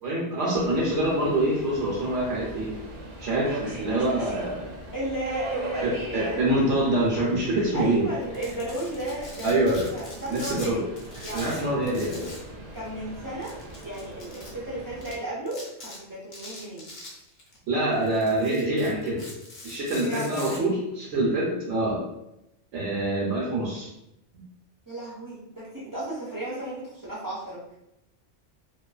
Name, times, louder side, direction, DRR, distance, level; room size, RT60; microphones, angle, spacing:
voice 1, 0.0-2.8 3.2-4.7 5.8-8.0 9.4-9.9 10.3-10.8 11.3-12.3 17.7-19.2 19.6-22.1 22.7-23.9 24.3-24.4, right 1 dB, 80° right, -5 dB, 1.0 m, -25 dB
Subway metro underground, 0.5-15.2, right 2 dB, 55° right, 0.7 m, -40 dB
voice 2, 4.9-6.5 7.7-10.9 11.2-12.3 12.7-13.6 13.8-16.9 19.9-20.6 24.9-27.6, right 1 dB, 35° right, -7 dB, 0.3 m, -34 dB
Domestic sounds home sounds, 8.2-10.7 11.0-12.5 12.8-12.9 13.4-14.5 15.0-15.1 15.5-16.0 16.3-17.6 17.9-20.6, left 2 dB, 50° left, 0.7 m, -43 dB
2.5 x 2.2 x 2.3 m, 0.85 s
omnidirectional pair, 1.2 m